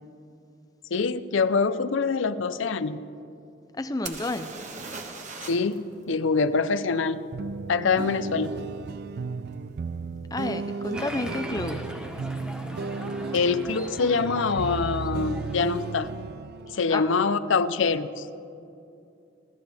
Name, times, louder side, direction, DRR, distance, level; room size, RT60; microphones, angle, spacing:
voice 1, 0.9-3.0 5.5-7.3 7.7-8.5 13.3-16.1 16.7-18.3, left 4 dB, 80° left, 13 dB, 0.6 m, -25 dB
voice 2, 3.8-4.5 10.3-11.9 16.9-17.0, left 2 dB, 20° left, 9 dB, 0.5 m, -30 dB
sound 1, 4.1-5.8 6.0-6.1 9.5-9.6 10.3-10.5 10.7-11.3 13.4-13.5 13.7-13.8, right 4 dB, 40° right, 1.3 m, -39 dB
sound 2, 7.3-16.8, right 4 dB, 55° right, 0.3 m, -34 dB
Applause, 10.9-16.0, equal, 5° right, 1.0 m, -40 dB
30.0 x 13.0 x 3.5 m, 2.6 s
head